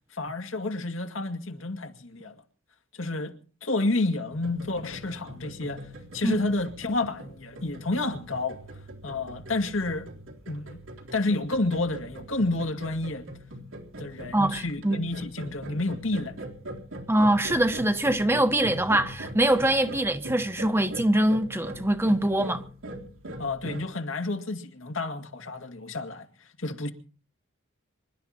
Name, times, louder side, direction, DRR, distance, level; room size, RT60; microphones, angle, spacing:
voice 1, 0.1-2.4 3.0-3.3 3.6-5.9 6.1-8.6 9.0-10.1 10.5-10.8 11.1-13.3 14.0-16.4 23.4-26.3 26.6-26.9, left 2 dB, 75° left, 2.3 m, -30 dB
sound 1, 4.3-23.8, right 1 dB, 80° right, 3.7 m, -41 dB
voice 2, 14.3-15.0 17.1-22.6, right 1 dB, 10° right, 1.1 m, -23 dB
26.5 x 12.0 x 4.3 m
head